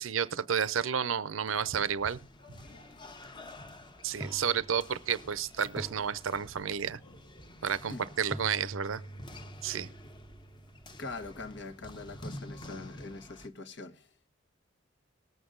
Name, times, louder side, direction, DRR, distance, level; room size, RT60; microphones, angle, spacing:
voice 1, 0.0-2.2 4.0-7.0 7.6-9.0 9.6-9.9, right 7 dB, 85° right, 0.6 m, -31 dB
sound 1, 1.5-13.5, left 1 dB, 25° left, 1.1 m, -49 dB
sound 2, 3.1-3.2 4.2-5.4 5.8-7.0 8.3-12.2, right 1 dB, 5° right, 0.6 m, -47 dB
voice 2, 11.0-14.1, left 3 dB, 60° left, 1.3 m, -43 dB
18.5 x 8.1 x 3.8 m
head